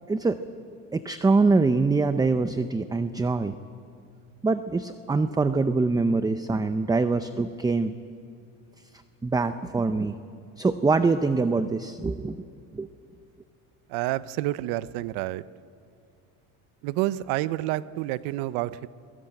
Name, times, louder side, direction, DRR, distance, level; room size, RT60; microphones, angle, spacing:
voice 1, 0.1-0.4 0.9-3.6 4.4-7.9 9.2-10.1 10.6-12.5 12.7-12.9, right 3 dB, 10° right, 10 dB, 0.6 m, -24 dB
voice 2, 13.9-15.4 16.8-18.9, right 16 dB, 85° right, 16 dB, 0.8 m, -29 dB
22.0 x 22.0 x 9.1 m, 2.4 s
cardioid pair, 130°, 38 cm